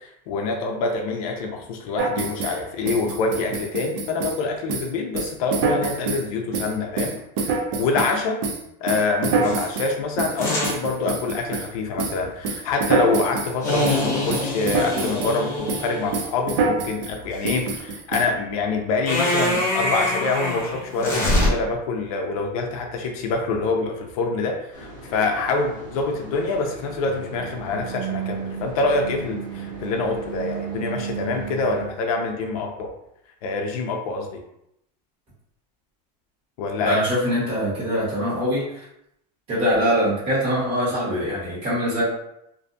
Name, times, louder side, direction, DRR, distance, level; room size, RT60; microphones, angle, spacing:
voice 1, 0.0-7.2 7.8-8.4 8.8-32.9 33.4-34.4 36.6-37.0, left 3 dB, 60° left, 2 dB, 0.4 m, -26 dB
sound 1, 2.0-2.6 2.9-4.4 4.7-4.9 5.1-6.3 6.5-8.2 8.4-11.7 12.0-12.2 12.4-13.5 13.8-14.0 14.3-15.4 15.7-15.9 16.1-17.1 17.4-18.3, right 4 dB, 50° right, 0.4 m, -26 dB
sound 2, 9.4-9.7 10.4-10.8 13.6-16.2 19.1-21.5, left 1 dB, 15° left, 0.6 m, -24 dB
sound 3, 24.7-31.9, right 6 dB, 75° right, 1.4 m, -34 dB
voice 2, 36.8-38.6 39.5-42.0, equal, 30° right, -8 dB, 1.2 m, -23 dB
2.5 x 2.2 x 2.5 m, 0.79 s
supercardioid pair, 170°, 21 cm